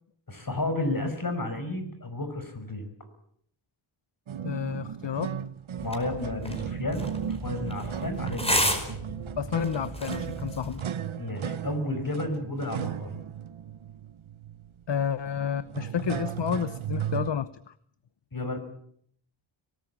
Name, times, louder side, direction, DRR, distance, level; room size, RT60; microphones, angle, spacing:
voice 1, 0.3-2.9 5.8-9.0 11.1-13.1 18.3-18.6, left 2 dB, 45° left, 8 dB, 5.8 m, -32 dB
sound 1, 4.3-17.3, right 9 dB, 80° right, 1.0 m, -36 dB
voice 2, 4.4-5.3 9.4-10.8 14.9-17.7, left 8 dB, 60° left, 15 dB, 0.9 m, -30 dB
sound 2, 5.8-10.8, equal, 10° left, 5.2 m, -32 dB
24.0 x 19.0 x 8.6 m, 0.65 s
wide cardioid pair, 95°, 48 cm